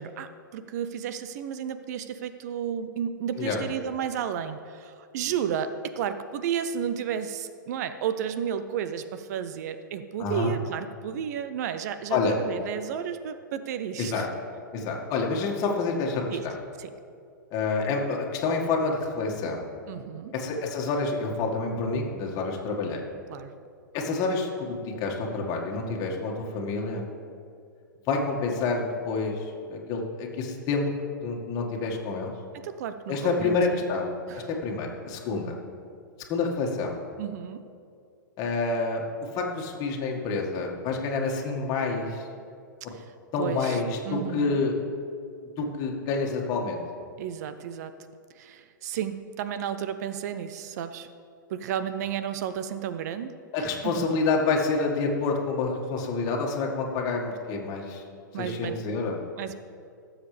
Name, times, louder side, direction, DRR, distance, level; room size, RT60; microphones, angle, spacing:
voice 1, 0.0-14.3 16.3-16.5 16.8-16.9 19.9-20.3 23.3-23.5 32.5-33.8 34.3-34.5 37.2-37.6 42.9-43.0 43.4-44.6 47.2-47.9 48.3-51.1 51.5-53.9 58.3-58.8 59.4-59.5, right 8 dB, 55° right, 11 dB, 0.6 m, -32 dB
voice 2, 10.2-10.5 12.1-12.4 14.0-14.3 14.7-16.5 17.5-19.6 20.3-23.0 23.9-27.1 28.1-30.9 31.2-32.3 33.1-34.1 34.5-35.6 36.3-36.9 38.4-42.3 43.3-44.7 45.6-46.8 53.5-58.0 58.4-59.2, left 4 dB, 35° left, 0 dB, 1.8 m, -28 dB
17.5 x 7.3 x 3.4 m, 2.4 s
hypercardioid pair, 115°, 11 cm